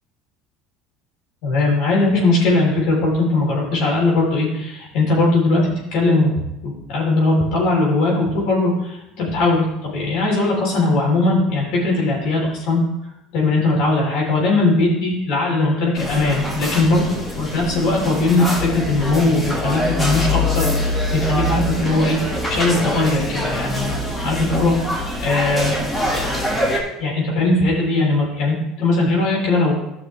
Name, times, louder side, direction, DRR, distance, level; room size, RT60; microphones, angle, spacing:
voice 1, 1.4-12.8 13.3-17.0 17.4-23.9 24.2-24.8 25.2-25.7 27.0-29.8, left 2 dB, 65° left, -3 dB, 3.8 m, -19 dB
sound 1, 15.9-26.8, left 1 dB, 15° left, 1.9 m, -24 dB
13.0 x 6.1 x 3.3 m, 0.87 s
supercardioid pair, 125°, 0 cm